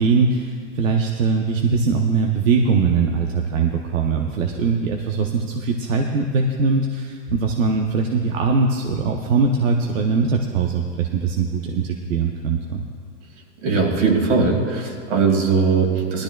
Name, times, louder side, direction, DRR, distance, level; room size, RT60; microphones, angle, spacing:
voice 1, 0.0-12.8, right 4 dB, 85° right, 2 dB, 0.9 m, -21 dB
voice 2, 13.6-16.2, right 4 dB, 65° right, 2 dB, 2.4 m, -19 dB
18.0 x 13.0 x 2.3 m, 2.3 s
supercardioid pair, 140°, 38 cm